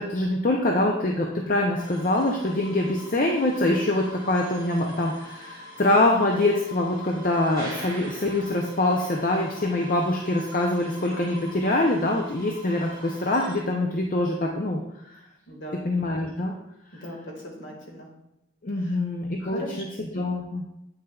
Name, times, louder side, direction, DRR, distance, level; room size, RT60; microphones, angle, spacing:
voice 1, 0.0-14.8 15.8-16.5 16.9-17.0 18.6-20.7, left 1 dB, 40° left, 1 dB, 0.5 m, -24 dB
sound 1, 1.8-13.6, equal, 20° right, 1.6 m, -43 dB
voice 2, 15.5-15.9 17.0-18.1 18.8-19.0 19.4-19.8, equal, 60° left, 0 dB, 1.7 m, -38 dB
8.1 x 6.5 x 2.3 m, 0.86 s
head